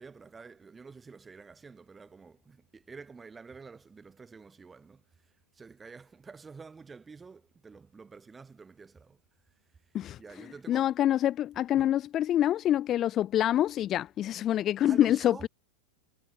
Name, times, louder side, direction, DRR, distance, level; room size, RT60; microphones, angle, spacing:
voice 1, 0.0-5.0 5.5-9.2 10.2-10.9 11.7-11.9 14.8-15.5, right 4 dB, 15° right, 3.0 m, -49 dB
voice 2, 10.7-15.5, left 12 dB, 30° left, 0.7 m, -26 dB
figure-of-eight pair, 90°, 0 cm